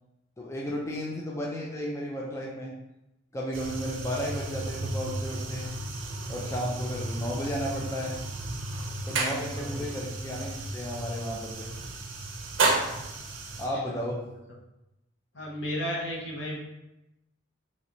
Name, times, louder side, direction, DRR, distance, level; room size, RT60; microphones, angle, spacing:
voice 1, 0.4-2.7 3.3-5.8 6.3-8.2 9.1-11.7 13.6-14.2, equal, 15° left, -3 dB, 0.3 m, -33 dB
sound 1, 3.5-13.7, right 2 dB, 70° right, 0.5 m, -33 dB
voice 2, 9.5-10.0 13.7-14.1 15.3-16.6, equal, 65° left, -3 dB, 0.9 m, -34 dB
3.1 x 2.5 x 2.9 m, 0.92 s
head